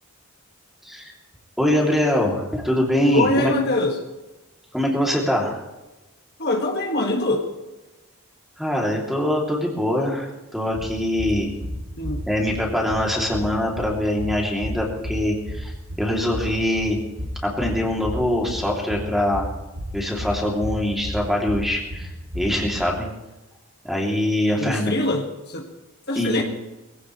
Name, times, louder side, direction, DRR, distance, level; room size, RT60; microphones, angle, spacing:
voice 1, 1.6-3.5 4.7-5.6 8.6-11.5 12.3-17.0 17.4-19.4 19.9-23.1 23.8-24.9 26.2-26.4, left 1 dB, ahead, -1 dB, 2.8 m, -23 dB
voice 2, 3.1-4.0 6.4-7.5 12.0-12.2 24.6-25.7 26.1-26.4, left 2 dB, 50° left, 2 dB, 1.7 m, -23 dB
sound 1, 10.7-22.9, equal, 60° right, 3.0 m, -33 dB
22.0 x 16.0 x 3.2 m, 1.1 s
head